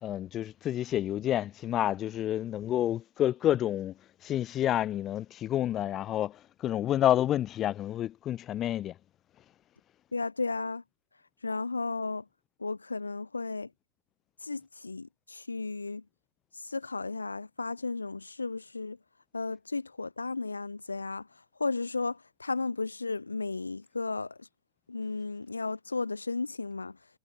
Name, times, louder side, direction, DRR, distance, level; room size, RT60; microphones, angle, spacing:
voice 1, 0.0-3.9 4.2-8.9, left 12 dB, 30° left, 3.9 m, -29 dB
voice 2, 10.1-10.8 11.4-12.2 12.6-13.7 14.4-16.0 16.6-19.0 19.3-21.3 21.6-24.5 24.9-27.0, left 3 dB, 80° left, 1.5 m, -34 dB
figure-of-eight pair, 90°, 0 cm